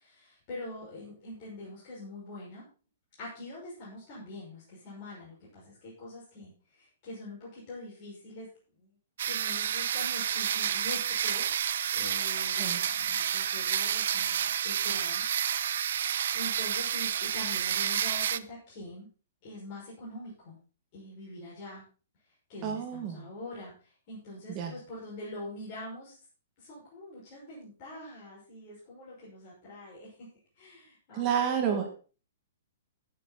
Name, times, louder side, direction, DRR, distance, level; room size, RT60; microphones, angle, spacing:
voice 1, 0.0-2.6 3.2-8.5 8.8-9.0 9.2-11.5 11.9-19.1 19.4-20.6 20.9-21.8 22.5-26.2 26.6-30.3 30.5-31.4, left 1 dB, 30° left, -7 dB, 5.9 m, -44 dB
sound 1, 9.2-18.4, right 9 dB, 60° right, 0.6 m, -30 dB
voice 2, 22.6-23.3 24.5-24.7 31.1-32.1, right 8 dB, 20° right, 3 dB, 1.8 m, -30 dB
15.5 x 7.4 x 4.2 m, 0.37 s
hypercardioid pair, 175°, 0 cm